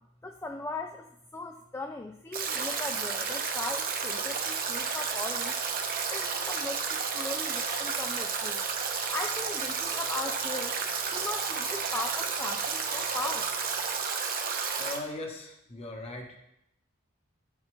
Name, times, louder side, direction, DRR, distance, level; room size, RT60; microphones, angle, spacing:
voice 1, 0.2-5.6 6.1-8.6 9.1-10.8 11.1-13.5, left 2 dB, 10° left, 4 dB, 0.3 m, -38 dB
Stream / Drip / Trickle dribble, 2.3-15.0, right 5 dB, 40° right, 0.9 m, -31 dB
voice 2, 14.8-16.4, left 2 dB, 25° left, 2 dB, 1.1 m, -39 dB
9.6 x 7.2 x 3.2 m, 0.81 s
head